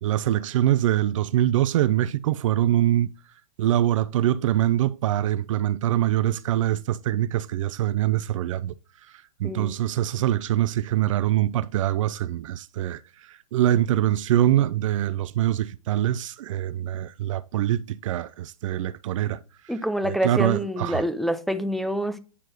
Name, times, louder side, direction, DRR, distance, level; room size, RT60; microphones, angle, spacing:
voice 1, 0.0-3.1 3.6-8.7 9.4-13.0 13.5-19.4 20.0-21.0, right 12 dB, 60° right, 0.5 m, -24 dB
voice 2, 9.4-9.8 19.7-22.2, equal, ahead, 0.5 m, -26 dB
9.8 x 4.6 x 2.9 m
hypercardioid pair, 140°, 19 cm